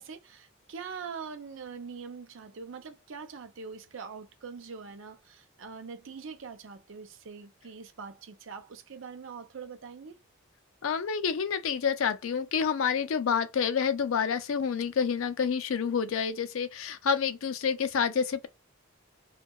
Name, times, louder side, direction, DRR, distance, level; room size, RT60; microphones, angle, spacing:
voice 1, 0.0-10.2, right 5 dB, 65° right, 0.5 m, -43 dB
voice 2, 10.8-18.5, left 6 dB, 75° left, 0.4 m, -28 dB
2.7 x 2.2 x 2.2 m
head